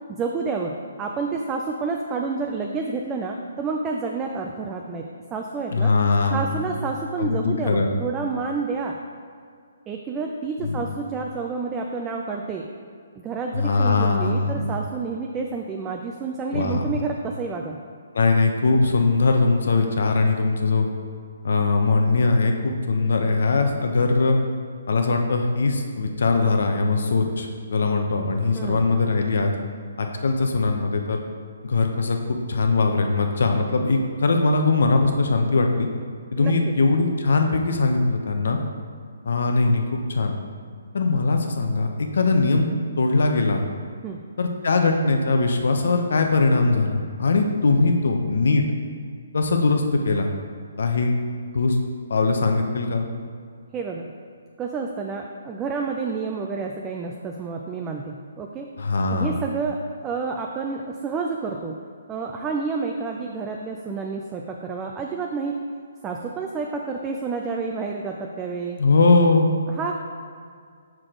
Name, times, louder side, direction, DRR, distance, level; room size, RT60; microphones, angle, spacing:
voice 1, 0.1-5.9 6.3-9.0 9.9-12.7 13.2-17.8 28.6-28.8 36.4-36.7 44.0-44.2 53.7-54.1 54.6-58.7 59.1-61.8 62.1-65.6 66.0-68.8 69.8-69.9, right 4 dB, 15° right, 1 dB, 0.4 m, -29 dB
voice 2, 5.7-6.5 7.2-7.9 10.6-10.8 13.5-14.8 16.5-16.9 18.1-20.9 21.4-24.4 24.9-29.5 30.0-31.2 31.6-35.9 36.3-38.6 39.2-40.3 40.9-42.7 43.0-43.7 44.4-48.6 49.3-50.3 50.8-51.1 51.5-51.8 52.1-53.1 58.8-59.3 68.8-69.5, left 3 dB, 70° left, 4 dB, 0.8 m, -21 dB
6.1 x 4.8 x 3.7 m, 2.1 s
hypercardioid pair, 150°, 0 cm